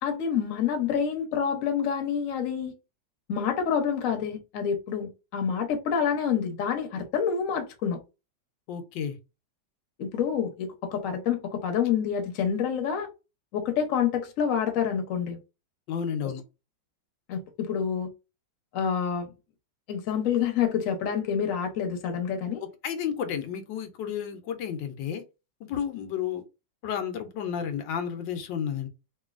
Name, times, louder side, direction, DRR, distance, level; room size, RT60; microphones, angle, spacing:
voice 1, 0.0-2.7 3.3-8.0 10.0-13.1 13.5-15.4 16.2-16.3 17.3-18.1 18.7-19.3 19.9-22.6, left 7 dB, 60° left, 1.0 m, -27 dB
voice 2, 8.7-9.2 15.9-16.4 22.8-25.2 25.6-26.4 26.8-28.9, left 8 dB, 85° left, 1.3 m, -32 dB
3.0 x 2.6 x 2.4 m
omnidirectional pair, 2.0 m